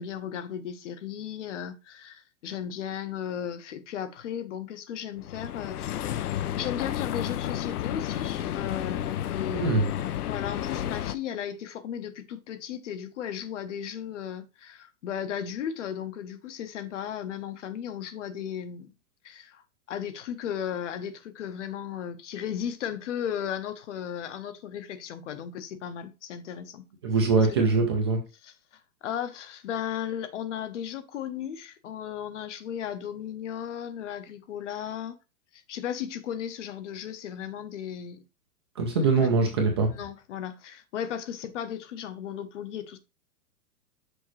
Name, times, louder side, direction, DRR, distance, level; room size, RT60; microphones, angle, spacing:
voice 1, 0.0-18.9 19.2-19.6 19.9-26.9 27.4-27.5 28.4-28.5 29.0-35.2 35.5-38.2 39.0-39.3 39.9-43.0, left 9 dB, 55° left, 0.9 m, -35 dB
sound 1, 5.2-11.2, left 11 dB, 85° left, 0.7 m, -31 dB
voice 2, 9.5-9.9 27.0-28.2 38.8-39.9, right 4 dB, 20° right, 0.5 m, -23 dB
6.4 x 5.2 x 3.1 m
hypercardioid pair, 165°, 45 cm